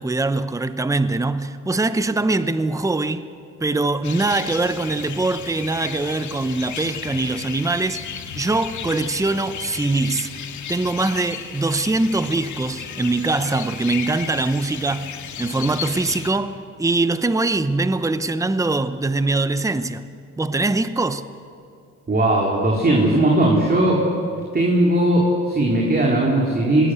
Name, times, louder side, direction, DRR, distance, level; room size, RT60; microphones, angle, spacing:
voice 1, 0.0-3.3 3.6-8.0 8.3-10.3 10.7-15.1 15.4-20.0 20.4-21.3, right 2 dB, 10° right, 1.0 m, -22 dB
sound 1, 4.0-16.3, left 8 dB, 75° left, 2.2 m, -34 dB
voice 2, 22.1-24.0 24.5-26.9, right 1 dB, 30° right, 4.1 m, -18 dB
27.0 x 20.5 x 8.2 m
cardioid pair, 90°, 30 cm